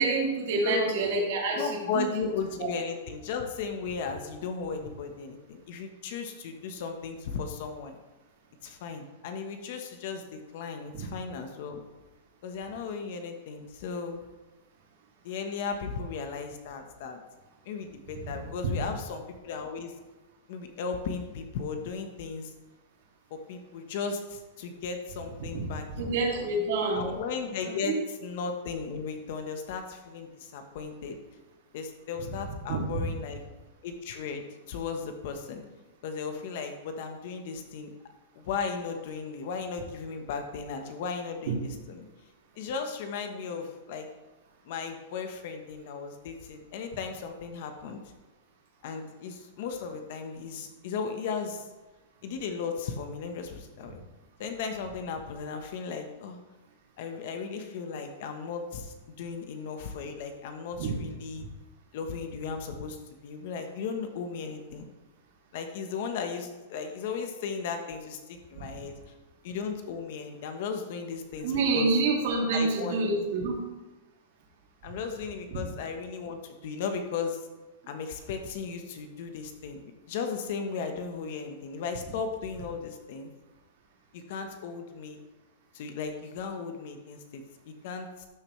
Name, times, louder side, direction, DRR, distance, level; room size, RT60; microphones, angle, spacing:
voice 1, 0.0-2.1 2.6-2.7 10.9-11.1 18.1-18.2 18.6-18.9 25.5-27.0 27.6-28.0 32.7-33.1 60.8-61.0 61.3-61.5 68.6-68.7 71.4-73.7 75.5-75.6, right 3 dB, 55° right, -2 dB, 2.5 m, -28 dB
voice 2, 0.6-1.0 1.6-8.0 8.6-11.8 12.4-14.2 15.2-17.2 17.6-19.9 20.5-22.5 23.3-26.5 26.9-31.2 31.7-33.4 33.8-35.6 36.0-37.9 38.3-42.0 42.6-44.1 44.7-48.0 48.8-51.6 52.2-54.0 54.4-56.4 57.0-61.4 61.9-63.0 63.2-64.8 65.5-68.9 69.4-71.9 72.5-73.0 73.4-73.5 74.8-77.5 77.9-79.8 80.1-83.3 84.1-85.2 85.7-88.3, left 5 dB, 50° left, 6 dB, 1.1 m, -36 dB
12.5 x 7.0 x 3.2 m, 1.1 s
supercardioid pair, 170°, 0 cm